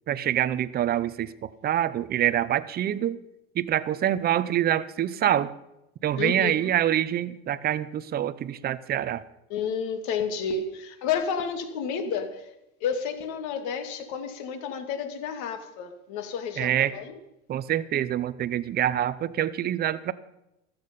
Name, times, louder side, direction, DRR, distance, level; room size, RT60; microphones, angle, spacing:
voice 1, 0.1-3.2 3.5-5.5 6.0-9.2 16.6-16.9 17.5-20.1, right 11 dB, 30° right, 16 dB, 0.7 m, -26 dB
voice 2, 6.2-6.6 9.5-12.5 12.8-17.2, left 6 dB, 60° left, 7 dB, 2.4 m, -31 dB
15.0 x 14.0 x 5.3 m, 0.88 s
supercardioid pair, 140°, 34 cm